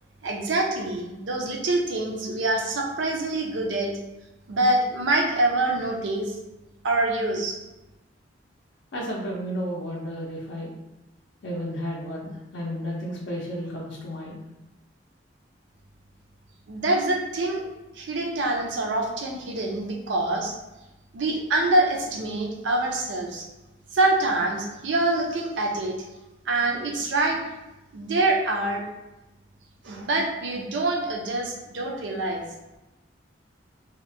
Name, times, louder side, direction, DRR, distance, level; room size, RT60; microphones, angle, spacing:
voice 1, 0.2-4.0 4.5-6.3 6.8-7.6 16.7-17.6 18.0-20.5 21.1-23.5 23.9-26.0 26.5-27.4 27.9-28.8 29.8-32.4, right 2 dB, 80° right, 1 dB, 0.5 m, -25 dB
voice 2, 8.9-10.7 11.4-14.4, equal, 70° left, -3 dB, 0.4 m, -32 dB
2.8 x 2.1 x 2.5 m, 1.0 s
head